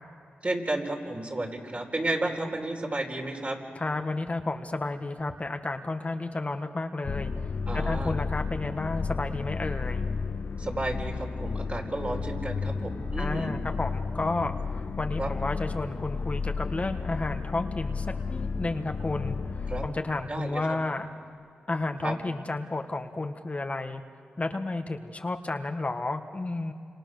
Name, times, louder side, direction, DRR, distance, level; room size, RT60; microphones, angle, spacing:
voice 1, 0.4-3.6 7.7-8.2 10.6-13.6 15.2-15.3 19.7-19.8 20.3-20.6 22.0-22.1, right 2 dB, 35° right, 1 dB, 4.4 m, -32 dB
voice 2, 3.7-7.3 7.7-10.1 13.2-21.1 21.7-24.0 24.4-26.7, left 2 dB, 35° left, 5 dB, 1.4 m, -32 dB
sound 1, 7.0-19.9, left 4 dB, 70° left, 1.2 m, -32 dB
29.0 x 26.5 x 6.6 m, 2.4 s
cardioid pair, 55°, 4 cm